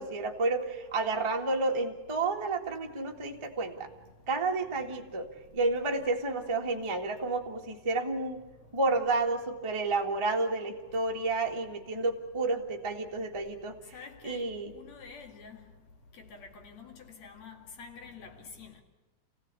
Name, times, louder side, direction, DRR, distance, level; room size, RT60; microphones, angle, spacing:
voice 1, 0.0-3.9 4.3-5.3 5.5-8.4 8.7-13.8 14.2-14.7, right 3 dB, 15° right, 1.3 m, -30 dB
voice 2, 13.9-14.4 14.7-15.6 16.2-18.8, left 5 dB, 65° left, 3.4 m, -47 dB
28.0 x 16.5 x 8.4 m
omnidirectional pair, 3.5 m